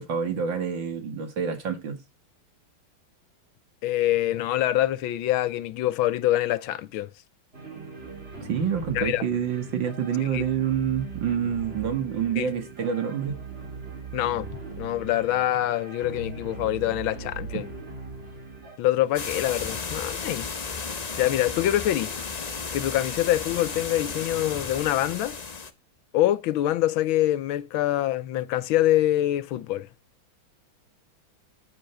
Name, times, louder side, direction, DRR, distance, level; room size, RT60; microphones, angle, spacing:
voice 1, 0.0-2.0 8.4-13.4 17.5-17.6, right 7 dB, 65° right, 2.6 m, -27 dB
voice 2, 3.8-7.1 8.9-9.2 10.3-10.4 12.4-12.5 14.1-14.5 14.8-17.7 18.8-20.5 21.2-22.1 22.7-25.4 26.1-29.9, left 14 dB, 80° left, 1.5 m, -25 dB
sound 1, 7.5-18.8, right 4 dB, 30° right, 3.5 m, -40 dB
sound 2, 19.1-25.7, left 5 dB, 50° left, 0.4 m, -34 dB
10.0 x 9.5 x 3.4 m
omnidirectional pair, 2.2 m